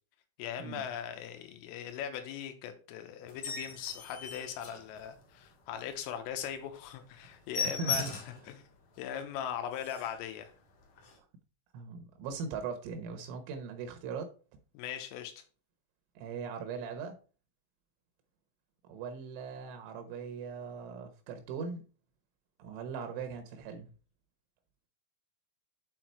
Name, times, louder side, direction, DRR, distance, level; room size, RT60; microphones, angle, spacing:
voice 1, 0.4-8.7 9.0-10.5 14.8-15.4, left 9 dB, 80° left, 3.6 m, -40 dB
sound 1, 3.3-5.4 5.8-6.0 6.3-6.4 6.7-6.9 7.1-8.5 8.9-9.0 9.4-9.5 9.7-10.2 11.0-11.1, left 5 dB, 55° left, 2.4 m, -38 dB
voice 2, 7.8-8.2 11.7-14.3 16.2-17.2 18.8-21.8 22.6-23.9, right 5 dB, 75° right, 3.3 m, -40 dB
8.2 x 4.7 x 4.5 m
omnidirectional pair, 6.0 m